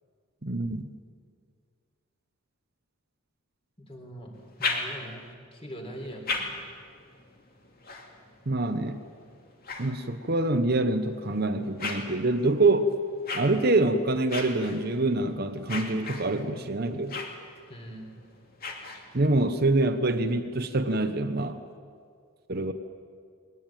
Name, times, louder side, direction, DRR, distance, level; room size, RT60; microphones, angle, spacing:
voice 1, 0.4-0.9 8.5-9.0 9.8-12.9 13.3-17.2 19.1-21.6 22.5-22.7, right 2 dB, 45° right, 8 dB, 1.0 m, -25 dB
voice 2, 3.8-4.3 4.6-6.6 17.7-18.1, equal, 25° left, 2 dB, 3.7 m, -42 dB
sound 1, 4.3-5.3 5.9-10.5 11.1-19.4, left 3 dB, 45° left, 2.6 m, -39 dB
21.0 x 19.5 x 9.1 m, 2.1 s
head